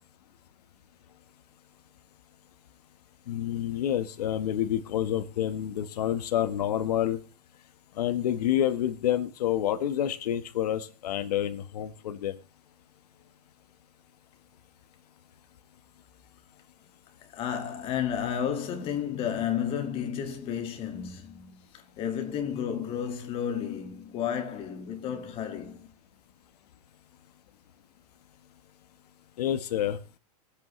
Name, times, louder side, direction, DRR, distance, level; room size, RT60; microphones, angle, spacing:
voice 1, 3.3-7.2 7.9-12.4 29.4-30.0, left 11 dB, 70° left, 1.4 m, -28 dB
voice 2, 17.3-25.9, left 8 dB, 25° left, 1.9 m, -32 dB
22.5 x 8.5 x 3.2 m
supercardioid pair, 155°, 21 cm